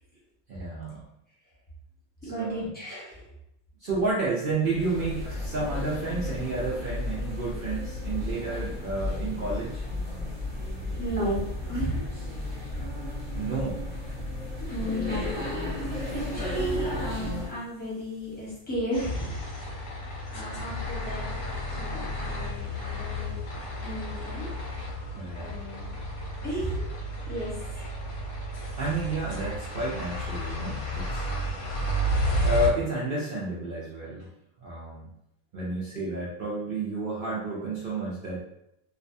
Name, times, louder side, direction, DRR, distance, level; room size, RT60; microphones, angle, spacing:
voice 1, 0.5-1.0 2.2-2.7 3.8-9.8 13.4-13.8 25.1-25.5 28.8-31.3 32.4-34.3 34.6-35.1 35.5-38.4, right 2 dB, 75° right, -6 dB, 0.5 m, -31 dB
voice 2, 2.2-3.3 10.9-12.2 14.7-15.2 15.5-15.7 16.1-19.4 19.7-19.9 20.3-23.4 23.8-24.5 25.4-25.9 26.4-27.9, right 1 dB, 10° left, -8 dB, 0.7 m, -34 dB
sound 1, 4.7-17.6, left 2 dB, 35° right, 0.9 m, -33 dB
sound 2, 18.9-32.7, equal, 75° left, 1.1 m, -32 dB
2.5 x 2.1 x 2.6 m, 0.80 s
omnidirectional pair, 1.6 m